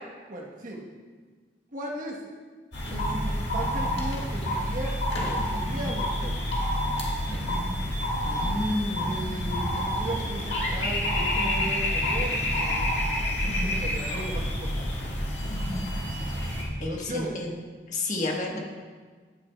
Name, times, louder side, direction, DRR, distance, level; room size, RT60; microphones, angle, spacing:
voice 1, 0.3-0.8 1.7-2.2 2.9-6.4 8.4-8.5 9.0-12.9 13.6-14.9 16.8-17.4, right 1 dB, 50° right, -1 dB, 1.2 m, -37 dB
sound 1, 2.7-16.6, equal, 90° left, 1.8 m, -28 dB
voice 2, 8.2-9.3 9.5-9.6 16.8-17.5 17.9-18.6, left 2 dB, 45° left, -1 dB, 1.4 m, -30 dB
11.0 x 8.6 x 2.3 m, 1.5 s
head